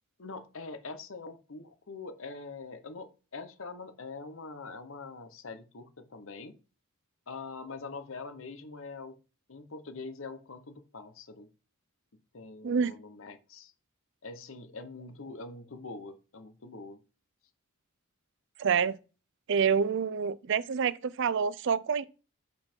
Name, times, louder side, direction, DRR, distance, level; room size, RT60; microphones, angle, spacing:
voice 1, 0.2-6.5 7.3-9.2 9.5-11.5 12.3-13.7 14.2-17.0, left 3 dB, 65° left, 0.9 m, -44 dB
voice 2, 18.6-19.0 19.5-22.0, right 6 dB, 55° right, 0.4 m, -27 dB
5.5 x 5.4 x 4.4 m
head